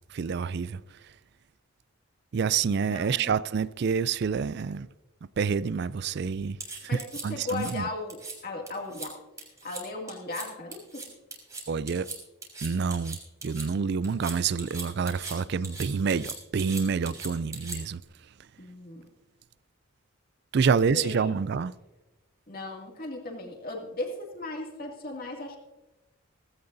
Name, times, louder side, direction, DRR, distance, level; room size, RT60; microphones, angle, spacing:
voice 1, 0.1-0.8 2.3-4.9 5.4-6.6 7.2-7.8 11.7-12.1 12.6-13.2 13.4-18.0 20.5-21.7, right 6 dB, 50° right, 0.3 m, -27 dB
voice 2, 2.9-3.4 6.9-9.2 9.6-11.1 18.6-19.1 20.9-21.3 22.5-25.6, left 2 dB, 45° left, 2.4 m, -37 dB
sound 1, 6.6-7.7 8.1-8.3 8.7-9.1 9.4-9.8 10.1-10.5 10.7-13.7 14.0-15.4 15.6-18.0, right 3 dB, 15° right, 3.0 m, -39 dB
17.0 x 15.5 x 2.6 m
head